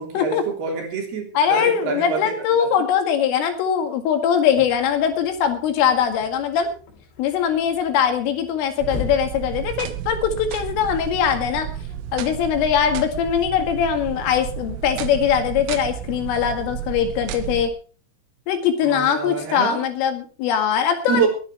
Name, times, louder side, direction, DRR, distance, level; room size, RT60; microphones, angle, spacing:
voice 1, 0.0-2.7 18.8-19.8 21.1-21.3, right 6 dB, 55° right, 1 dB, 5.1 m, -26 dB
voice 2, 1.4-6.7 7.2-11.7 12.1-17.7 18.5-21.3, left 8 dB, 80° left, 6 dB, 4.5 m, -21 dB
sound 1, 4.5-10.4, left 6 dB, 60° left, 4.9 m, -40 dB
sound 2, 8.8-17.7, right 10 dB, 80° right, 3.6 m, -32 dB
21.0 x 10.5 x 4.5 m, 0.39 s
omnidirectional pair, 5.8 m